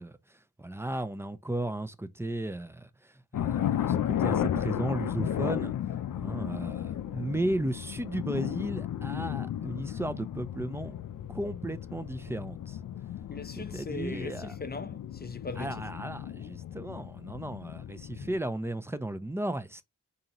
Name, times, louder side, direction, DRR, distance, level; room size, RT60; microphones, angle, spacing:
voice 1, 0.0-5.7 6.1-10.9 11.3-12.8 13.6-14.6 15.6-19.8, right 1 dB, 10° right, 0.5 m, -35 dB
sound 1, 3.3-18.4, left 10 dB, 75° left, 0.5 m, -34 dB
voice 2, 13.3-15.9, left 3 dB, 30° left, 0.7 m, -39 dB
3.8 x 2.8 x 2.9 m
cardioid pair, 55°, 32 cm